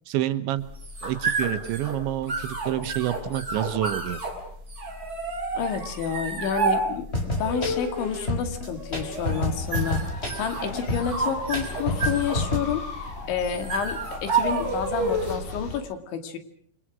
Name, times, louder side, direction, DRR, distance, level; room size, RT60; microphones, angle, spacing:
voice 1, 0.1-0.6 1.0-4.2, right 13 dB, 85° right, 12 dB, 3.6 m, -28 dB
sound 1, 0.6-15.5, right 3 dB, 20° right, 5.6 m, -30 dB
voice 2, 5.5-10.0 10.4-12.8 13.3-16.4, left 7 dB, 90° left, 7 dB, 4.8 m, -29 dB
sound 2, 7.1-12.6, left 1 dB, 15° left, 5.1 m, -29 dB
sound 3, 9.1-15.8, left 3 dB, 65° left, 6.9 m, -39 dB
29.0 x 25.0 x 6.3 m, 0.62 s
omnidirectional pair, 5.1 m